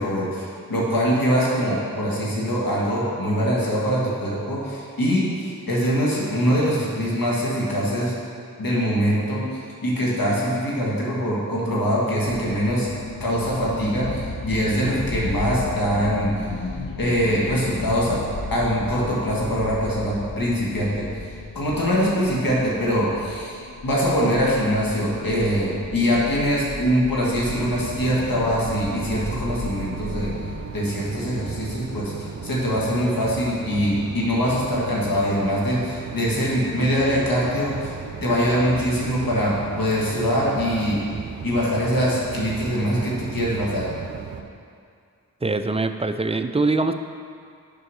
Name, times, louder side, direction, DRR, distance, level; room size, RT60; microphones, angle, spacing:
voice 1, 0.0-8.1 8.6-9.4 9.8-12.9 13.2-16.5 17.0-18.2 18.5-21.0 21.5-30.3 30.7-37.9 38.2-41.0 41.4-43.8, equal, 80° left, -5 dB, 1.8 m, -23 dB
sound 1, 12.2-30.6, left 3 dB, 65° left, 0.9 m, -35 dB
sound 2, 27.5-44.4, right 5 dB, 55° right, 0.7 m, -36 dB
voice 2, 45.4-46.9, right 3 dB, 20° right, 9 dB, 0.4 m, -23 dB
6.7 x 4.6 x 6.3 m, 2.3 s
cardioid pair, 45°, 34 cm